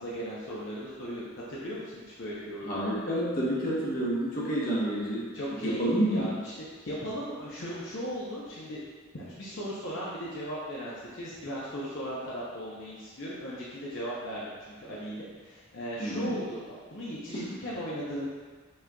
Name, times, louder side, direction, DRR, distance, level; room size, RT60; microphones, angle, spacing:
voice 1, 0.0-2.7 5.3-6.5 6.8-8.8 9.1-18.3, equal, 60° left, -8 dB, 0.7 m, -37 dB
voice 2, 2.6-5.2 5.5-6.3 16.0-16.4 17.3-17.5, right 1 dB, 40° left, -6 dB, 1.0 m, -29 dB
5.4 x 3.8 x 2.3 m, 1.4 s
head